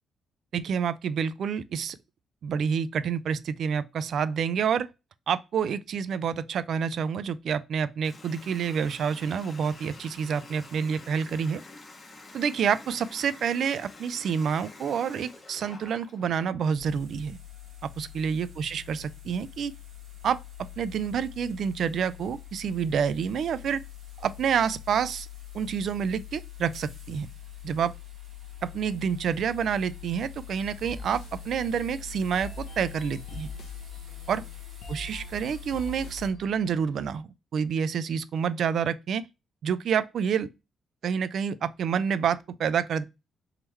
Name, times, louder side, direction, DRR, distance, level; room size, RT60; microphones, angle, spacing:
voice 1, 0.5-2.0 2.4-4.9 5.3-11.6 12.3-17.4 18.0-19.7 20.2-20.4 20.8-23.8 24.2-25.3 25.5-27.3 27.6-27.9 28.6-33.5 34.3-34.4 34.9-39.2 39.6-40.5 41.0-43.0, right 7 dB, 60° right, 0.3 m, -28 dB
Water tap faucet, 8.0-16.6, left 2 dB, 25° left, 0.8 m, -48 dB
sound 1, 16.7-36.3, left 12 dB, 40° right, 1.3 m, -44 dB
sound 2, 30.6-37.1, equal, 75° left, 0.7 m, -45 dB
3.6 x 3.0 x 3.0 m
cardioid pair, 150°, 0 cm